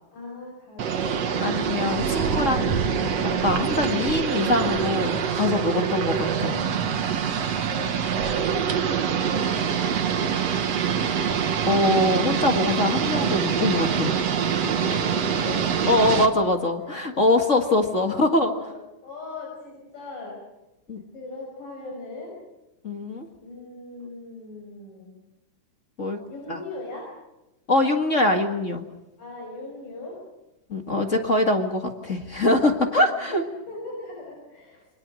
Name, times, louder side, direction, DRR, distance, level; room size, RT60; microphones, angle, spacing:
voice 1, 0.1-1.5 6.4-7.3 7.7-11.1 14.6-15.9 16.8-17.4 18.0-20.4 21.1-22.4 23.4-25.2 26.3-27.1 29.2-30.2 33.0-34.9, left 2 dB, 90° left, -1 dB, 7.5 m, -39 dB
sound 1, 0.8-16.3, right 7 dB, 55° right, 2.5 m, -25 dB
voice 2, 1.4-6.5 11.6-14.1 15.8-18.5 20.9-21.0 22.8-23.3 26.0-26.2 26.5-26.6 27.7-28.8 30.7-33.4, left 2 dB, 30° left, 4 dB, 1.6 m, -23 dB
28.0 x 24.5 x 6.4 m, 0.96 s
omnidirectional pair, 3.7 m